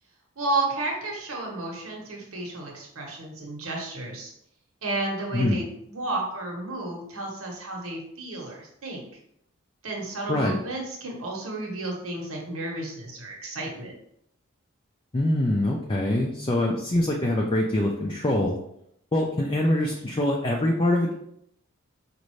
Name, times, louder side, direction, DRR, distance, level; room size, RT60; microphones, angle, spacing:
voice 1, 0.4-4.3 4.8-9.1 9.8-13.9, right 2 dB, 90° right, -1 dB, 1.2 m, -32 dB
voice 2, 15.1-18.6 19.1-21.1, left 1 dB, 25° left, -1 dB, 0.4 m, -24 dB
5.2 x 2.6 x 3.1 m, 0.74 s
head